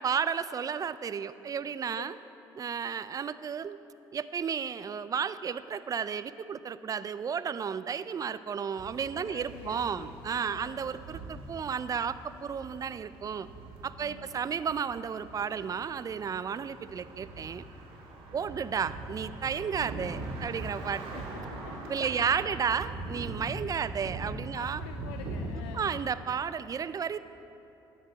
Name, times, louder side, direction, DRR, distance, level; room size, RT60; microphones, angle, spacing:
voice 1, 0.0-2.1 2.6-3.8 4.1-13.5 13.8-17.6 18.3-21.0 21.9-24.8 25.7-27.2, right 7 dB, 35° right, 15 dB, 0.4 m, -33 dB
sound 1, 8.8-26.1, right 2 dB, 65° right, 1.9 m, -42 dB
voice 2, 9.1-10.2 10.5-11.0 14.0-14.4 18.3-18.7 21.1-22.6 24.5-26.0, left 9 dB, 85° left, 7 dB, 0.5 m, -48 dB
13.0 x 9.7 x 4.1 m, 2.9 s
supercardioid pair, 65°, 10 cm